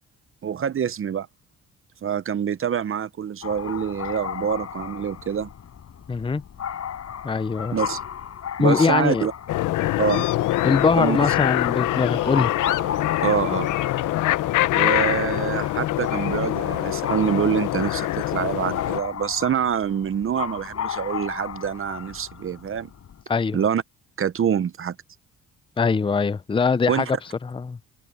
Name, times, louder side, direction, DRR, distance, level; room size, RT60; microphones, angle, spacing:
voice 1, 0.4-1.3 2.0-5.5 7.7-8.0 8.6-9.3 10.0-10.3 11.0-11.3 13.2-13.7 14.7-22.9 23.5-23.8 24.2-24.9 26.9-27.0, right 8 dB, 45° right, 0.9 m, -25 dB
sound 1, 3.4-23.2, left 8 dB, 55° left, 6.1 m, -35 dB
voice 2, 6.1-6.4 7.2-7.8 8.6-9.3 10.6-12.6 23.3-23.6 25.8-27.1 27.4-27.8, left 4 dB, 15° left, 0.6 m, -22 dB
sound 2, 9.5-19.0, left 15 dB, 85° left, 1.0 m, -24 dB
cardioid pair, 90°, 30 cm